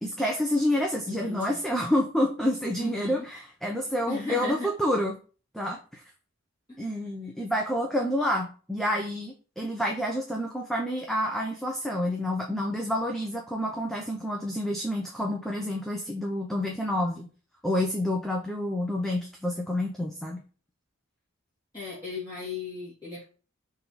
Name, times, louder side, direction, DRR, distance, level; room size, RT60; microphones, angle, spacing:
voice 1, 0.0-5.1 5.5-6.0 6.8-17.3 17.6-20.4, left 1 dB, ahead, 0 dB, 0.8 m, -28 dB
voice 2, 1.1-1.6 2.8-3.2 4.1-4.7 6.7-6.9 21.7-23.2, left 3 dB, 20° left, -11 dB, 3.0 m, -36 dB
5.9 x 3.6 x 6.0 m, 0.37 s
head